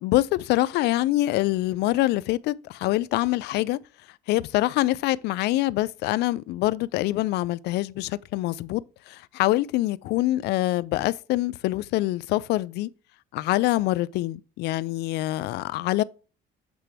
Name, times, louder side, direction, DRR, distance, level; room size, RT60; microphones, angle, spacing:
voice 1, 0.0-3.8 4.3-12.9 13.3-16.0, left 17 dB, 80° left, 0.4 m, -25 dB
8.2 x 3.3 x 4.4 m
cardioid pair, 110°, 17 cm